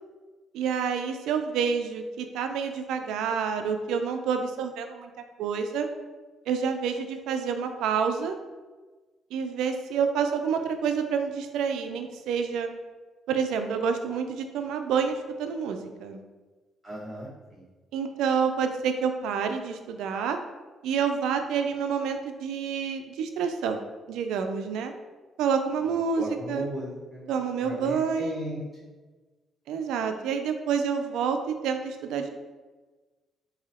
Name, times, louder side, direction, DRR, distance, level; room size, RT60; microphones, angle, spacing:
voice 1, 0.5-5.1 5.4-5.9 6.5-8.4 9.3-12.7 13.3-16.2 17.9-20.4 20.8-24.9 25.4-26.7 27.3-28.4 29.7-32.3, right 6 dB, 90° right, 6 dB, 0.3 m, -28 dB
voice 2, 16.8-17.6 26.1-27.2 27.6-28.6, equal, 5° right, -10 dB, 1.1 m, -36 dB
2.9 x 2.7 x 4.1 m, 1.3 s
cardioid pair, 90°, 0 cm